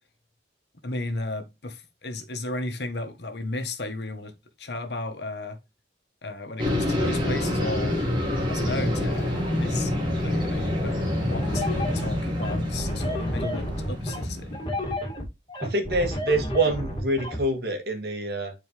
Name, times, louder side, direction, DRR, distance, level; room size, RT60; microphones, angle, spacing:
voice 1, 0.8-5.6 6.2-8.0 8.5-9.9 10.2-14.6, left 2 dB, 75° left, 1.4 m, -34 dB
sound 1, 6.6-14.9, left 1 dB, 25° right, 2.5 m, -27 dB
sound 2, 11.4-17.4, left 1 dB, 25° left, 2.3 m, -31 dB
voice 2, 15.6-18.5, right 2 dB, 65° right, 2.1 m, -26 dB
9.2 x 4.5 x 3.2 m
head